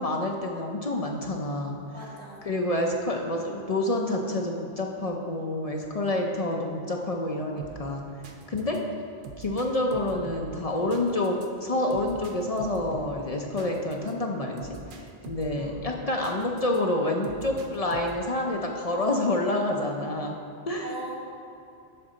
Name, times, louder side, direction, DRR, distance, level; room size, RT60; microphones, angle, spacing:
voice 1, 0.0-1.8 2.5-8.1 8.5-8.9 9.4-20.4 20.7-20.9, left 1 dB, 45° left, 1 dB, 0.6 m, -28 dB
voice 2, 1.9-2.5 15.6-15.9 20.8-21.2, right 2 dB, 85° right, -3 dB, 1.6 m, -40 dB
sound 1, 7.6-16.8 17.2-18.4, right 4 dB, 60° right, 0.7 m, -45 dB
8.8 x 3.8 x 6.3 m, 2.6 s
omnidirectional pair, 1.1 m